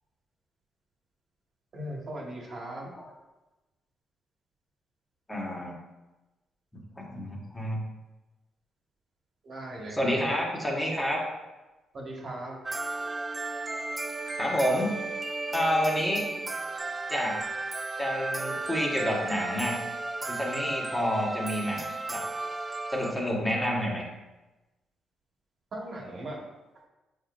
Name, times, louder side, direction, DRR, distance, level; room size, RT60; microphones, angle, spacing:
voice 1, 1.7-2.9 9.4-10.3 11.9-12.6 25.7-26.4, right 1 dB, 55° right, -3 dB, 1.8 m, -38 dB
voice 2, 5.3-5.7 7.0-7.8 9.9-11.2 14.4-14.9 15.5-16.2 17.1-17.4 18.0-19.8 20.3-21.8 22.1-22.2 22.9-24.0, equal, 10° left, -3 dB, 1.6 m, -28 dB
sound 1, 12.7-23.1, right 3 dB, 20° right, 0.4 m, -34 dB
8.3 x 5.1 x 2.6 m, 1.1 s
cardioid pair, 90°, 0 cm